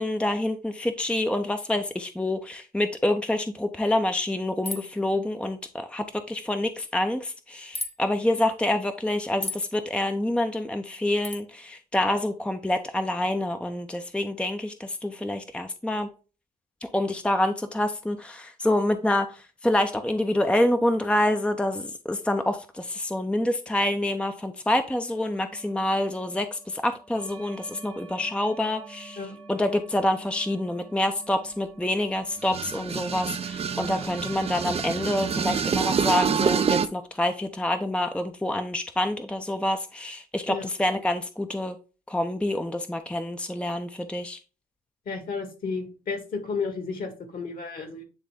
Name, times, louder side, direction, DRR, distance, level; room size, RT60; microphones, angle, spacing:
voice 1, 0.0-16.1 16.8-41.8 42.1-44.4, left 1 dB, 5° left, 0.7 m, -27 dB
sound 1, 4.6-5.0 7.7-7.9 9.4-9.7 11.2-11.4, left 2 dB, 30° left, 1.1 m, -33 dB
sound 2, 25.1-35.4, right 4 dB, 85° right, 1.5 m, -47 dB
sound 3, 32.4-36.9, right 7 dB, 35° right, 0.6 m, -27 dB
voice 2, 45.1-48.0, left 4 dB, 50° left, 2.2 m, -32 dB
9.7 x 3.3 x 3.6 m
hypercardioid pair, 45°, 19 cm